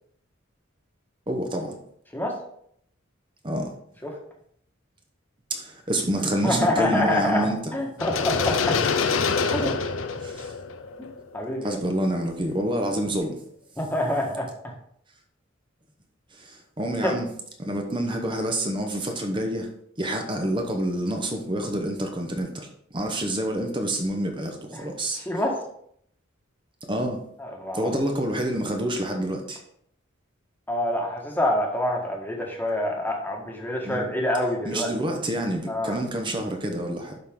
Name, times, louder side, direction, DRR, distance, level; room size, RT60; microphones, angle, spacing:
voice 1, 1.3-1.8 3.4-3.7 5.5-7.7 10.2-10.5 11.6-13.4 16.3-17.3 17.6-19.7 20.0-25.2 26.9-27.2 27.7-29.6 33.8-34.1 34.6-37.2, right 1 dB, 25° right, 3 dB, 0.9 m, -28 dB
voice 2, 6.4-9.0 9.5-9.7 11.3-11.8 13.8-14.5 17.0-17.1 24.7-24.9 25.2-25.5 27.4-27.9 30.7-34.9 35.7-36.0, left 1 dB, 10° left, 0 dB, 1.5 m, -26 dB
sound 1, 8.0-11.9, left 5 dB, 80° left, 0.6 m, -26 dB
11.5 x 4.4 x 3.7 m, 0.68 s
head